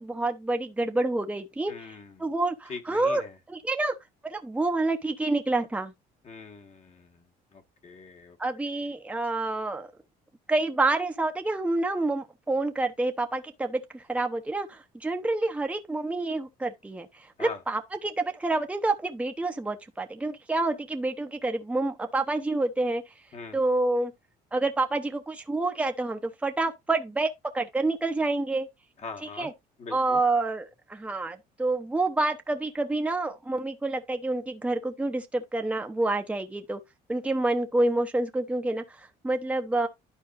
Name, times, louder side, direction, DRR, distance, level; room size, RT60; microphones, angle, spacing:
voice 1, 0.0-1.9 2.2-3.2 3.5-3.9 4.2-5.9 8.4-9.9 10.5-17.1 17.4-23.0 23.5-24.1 24.5-28.7 29.4-29.5 29.9-36.8 37.1-39.9, right 2 dB, 5° right, 0.9 m, -28 dB
voice 2, 1.7-2.3 2.7-3.4 6.2-8.4 8.7-8.8 17.4-17.6 23.3-23.6 29.0-29.5 29.8-30.2, left 4 dB, 40° left, 1.7 m, -42 dB
11.5 x 4.5 x 2.6 m
cardioid pair, 110°, 17 cm